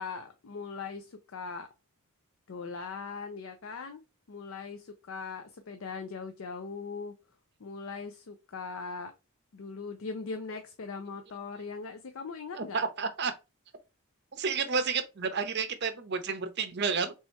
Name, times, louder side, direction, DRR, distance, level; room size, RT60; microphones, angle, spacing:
voice 1, 0.0-1.7 2.5-4.0 4.3-7.1 7.6-9.1 9.5-12.8, left 4 dB, 65° left, 0.5 m, -40 dB
voice 2, 12.5-13.3 14.3-17.1, right 5 dB, 50° right, 0.7 m, -31 dB
3.4 x 2.8 x 4.3 m
head